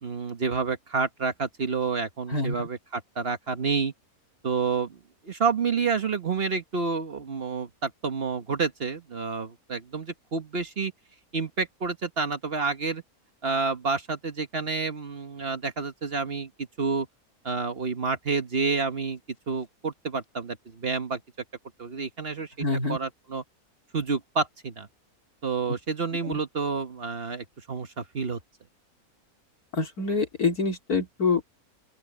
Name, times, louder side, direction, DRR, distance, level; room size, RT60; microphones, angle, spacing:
voice 1, 0.0-3.9 4.4-5.0 5.2-10.9 11.3-13.0 13.4-17.1 17.4-19.2 19.5-21.2 21.8-23.4 23.9-24.9 25.4-28.4, right 4 dB, 45° right, 1.3 m, -29 dB
voice 2, 22.6-23.0 26.2-26.4 29.7-31.4, left 4 dB, 80° left, 3.8 m, -26 dB
open air
omnidirectional pair, 1.6 m